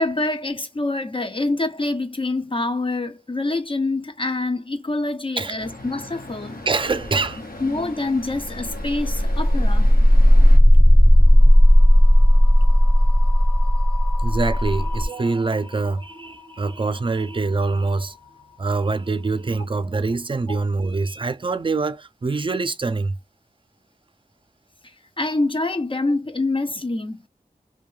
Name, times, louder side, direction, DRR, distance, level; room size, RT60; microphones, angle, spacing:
voice 1, 0.0-6.6 7.6-9.9 20.5-20.6 25.2-27.2, left 2 dB, 35° left, 0.5 m, -25 dB
Traffic noise roadway noise, 5.6-10.6, left 1 dB, 80° left, 0.8 m, -38 dB
voice 2, 6.7-7.4 14.2-18.2 18.6-23.2, right 3 dB, 35° right, 0.4 m, -24 dB
sound 1, 8.5-18.4, equal, ahead, 0.6 m, -16 dB
2.6 x 2.2 x 3.1 m
wide cardioid pair, 50°, 15 cm